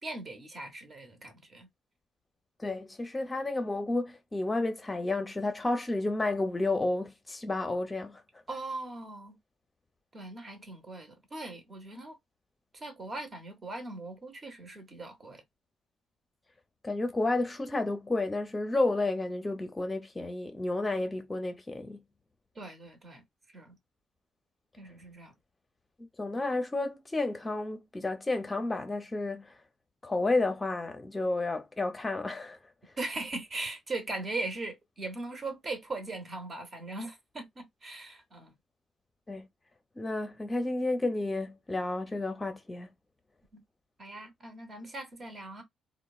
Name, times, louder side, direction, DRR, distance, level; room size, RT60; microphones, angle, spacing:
voice 1, 0.0-1.7 8.5-9.4 10.1-12.2 12.7-15.4 22.5-23.2 23.5-23.8 24.8-25.3 33.0-38.5 43.5-43.6 44.0-45.6, right 2 dB, 40° right, 0.9 m, -39 dB
voice 2, 2.6-8.2 16.8-22.0 26.0-29.5 30.0-32.6 39.3-39.5 40.0-42.9, left 2 dB, 20° left, 0.6 m, -31 dB
2.9 x 2.1 x 2.3 m
cardioid pair, 90°, 0 cm